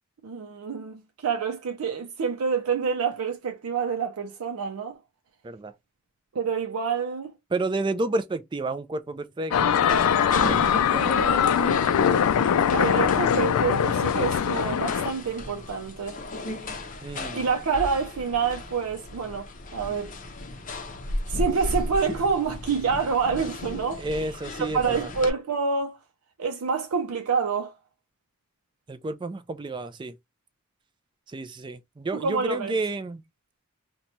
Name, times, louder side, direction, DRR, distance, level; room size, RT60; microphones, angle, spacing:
voice 1, 0.2-5.0 6.3-7.3 10.9-11.8 12.7-16.2 17.3-20.1 21.3-24.4 24.7-26.0 26.4-27.7 32.1-32.8, right 5 dB, 90° right, 0.5 m, -27 dB
voice 2, 7.5-10.0 10.5-10.6 10.9-11.4 17.0-17.4 24.0-25.1 28.9-30.1 31.3-33.2, right 2 dB, 20° right, 0.3 m, -31 dB
sound 1, 9.5-15.1, left 8 dB, 85° left, 0.3 m, -22 dB
sound 2, 9.9-25.3, left 1 dB, 35° left, 0.6 m, -34 dB
2.9 x 2.2 x 4.0 m
head